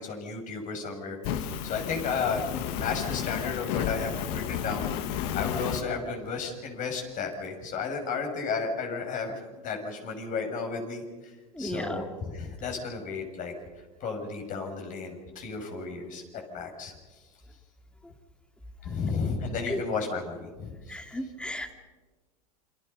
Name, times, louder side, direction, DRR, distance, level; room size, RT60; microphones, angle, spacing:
voice 1, 0.0-4.9 5.3-9.3 9.6-11.0 11.6-13.5 14.0-16.2 16.5-16.9 18.8-21.0, left 5 dB, 40° left, 4 dB, 6.6 m, -33 dB
Fire, 1.2-5.8, left 9 dB, 60° left, 2.0 m, -32 dB
voice 2, 11.6-12.0 19.7-19.8 20.9-21.7, equal, 5° left, 6 dB, 2.6 m, -34 dB
28.5 x 25.5 x 5.5 m, 1.3 s
supercardioid pair, 115°, 20 cm